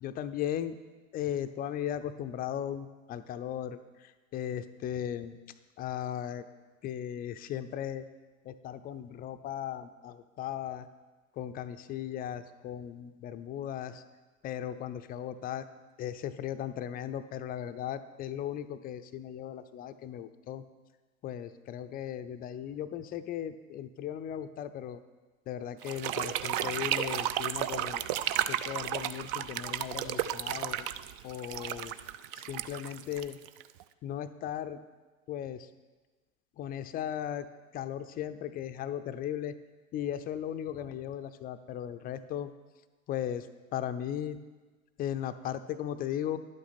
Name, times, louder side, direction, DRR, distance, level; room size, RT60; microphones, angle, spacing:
voice 1, 0.0-0.8 1.1-3.8 4.3-5.4 5.8-6.4 6.8-8.1 8.5-10.9 11.4-14.0 14.4-15.6 16.0-20.6 21.2-25.0 25.5-28.0 28.5-30.9 31.2-31.9 32.4-33.4 34.0-34.8 35.3-35.7 36.6-37.5 37.7-39.5 39.9-42.5 43.1-43.5 43.7-44.4 45.0-46.4, left 10 dB, 20° left, 11 dB, 0.4 m, -37 dB
sound 1, 25.8-33.8, right 11 dB, 40° right, 0.4 m, -33 dB
11.0 x 8.4 x 4.2 m, 1.3 s
hypercardioid pair, 90°, 41 cm